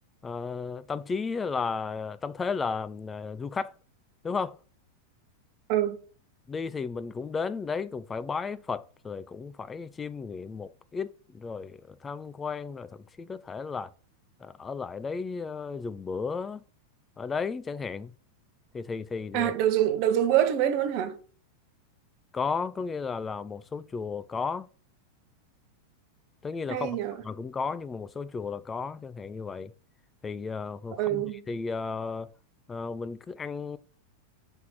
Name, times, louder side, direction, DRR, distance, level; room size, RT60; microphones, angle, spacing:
voice 1, 0.2-3.7 4.2-4.6 6.5-13.9 14.4-16.6 17.2-18.1 18.7-19.5 22.3-24.7 26.4-27.0 27.2-29.7 30.2-32.3 32.7-33.8, left 5 dB, 15° left, 0.4 m, -34 dB
voice 2, 19.3-21.2 26.7-27.2 31.0-31.4, right 11 dB, 45° right, 0.9 m, -25 dB
5.7 x 3.6 x 5.6 m
figure-of-eight pair, 90°, 0 cm